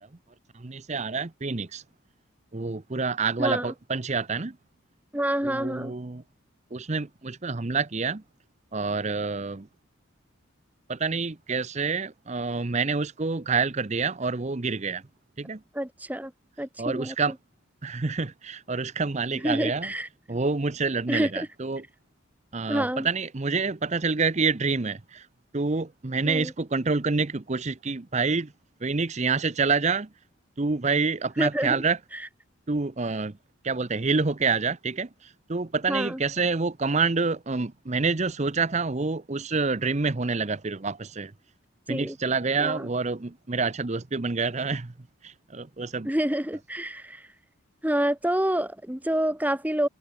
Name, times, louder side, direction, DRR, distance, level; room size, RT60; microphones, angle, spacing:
voice 1, 0.5-1.8 2.5-4.6 5.4-6.2 6.7-8.2 8.7-9.7 10.9-15.0 15.4-15.6 16.8-17.3 17.8-19.9 20.3-21.8 22.5-25.3 25.5-28.5 28.8-30.1 30.6-32.0 32.7-33.4 33.6-41.3 41.9-44.9 45.2-46.1, right 4 dB, 35° right, 0.7 m, -27 dB
voice 2, 5.1-5.9 15.7-16.3 16.6-17.1 19.3-20.1 21.1-21.5 22.7-23.1 26.2-26.5 31.4-31.8 35.9-36.2 41.9-42.2 42.6-42.9 46.0-47.3 47.8-49.9, right 1 dB, 10° right, 1.3 m, -27 dB
head